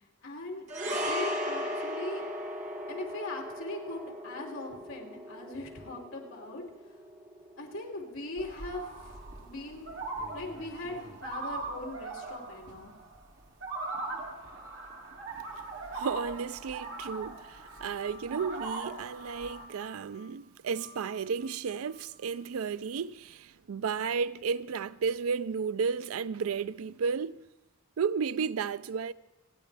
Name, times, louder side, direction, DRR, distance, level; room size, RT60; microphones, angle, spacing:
voice 1, 0.2-2.2 2.9-6.6 7.6-9.1 9.4-9.9 10.3-12.9, left 2 dB, 70° left, 2.9 m, -40 dB
sound 1, 0.7-9.2 9.4-9.6, equal, 35° right, 1.6 m, -37 dB
sound 2, 8.4-19.6, right 3 dB, 60° right, 2.5 m, -40 dB
voice 2, 15.9-27.4 28.0-29.1, right 6 dB, 90° right, 0.4 m, -33 dB
sound 3, 16.6-22.4, left 4 dB, 15° left, 2.0 m, -54 dB
28.5 x 10.5 x 3.4 m
head